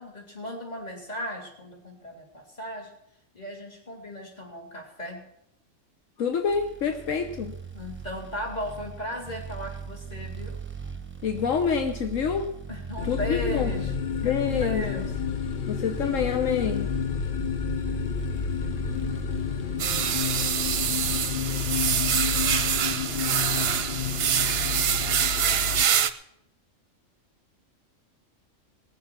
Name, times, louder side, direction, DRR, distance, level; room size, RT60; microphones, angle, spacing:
voice 1, 0.0-2.9 3.3-5.2 7.7-10.6 12.7-14.0 14.2-15.0, equal, 30° left, 0 dB, 2.8 m, -36 dB
voice 2, 6.2-7.5 11.2-12.5 13.0-13.7 14.2-15.1 15.7-16.9, left 6 dB, 75° left, 5 dB, 1.3 m, -27 dB
sound 1, 6.4-20.2, right 6 dB, 10° right, 0.9 m, -39 dB
sound 2, 13.0-25.9, left 8 dB, 55° left, 0.6 m, -30 dB
sound 3, 19.8-26.1, right 9 dB, 60° right, 0.8 m, -25 dB
19.0 x 7.2 x 6.0 m, 0.78 s
omnidirectional pair, 1.3 m